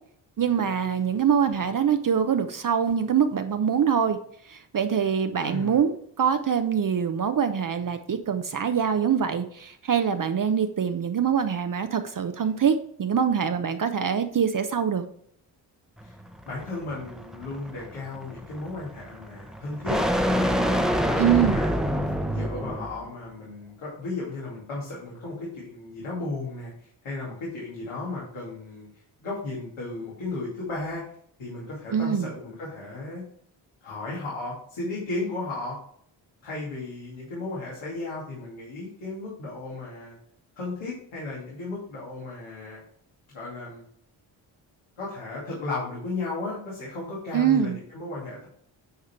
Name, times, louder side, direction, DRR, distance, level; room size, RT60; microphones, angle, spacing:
voice 1, 0.4-4.2 4.4-15.1 21.2-21.6 31.9-32.3 47.3-47.8, right 7 dB, 40° right, 8 dB, 0.7 m, -24 dB
voice 2, 5.4-5.8 16.0-16.1 16.4-20.0 20.3-21.7 22.3-31.0 31.4-33.2 33.8-35.8 36.4-40.2 40.6-42.8 43.3-43.8 45.0-48.5, left 2 dB, 80° left, -6 dB, 2.6 m, -35 dB
sound 1, 16.0-23.0, equal, ahead, 0.9 m, -27 dB
9.6 x 3.7 x 4.4 m, 0.65 s
supercardioid pair, 50°, 49 cm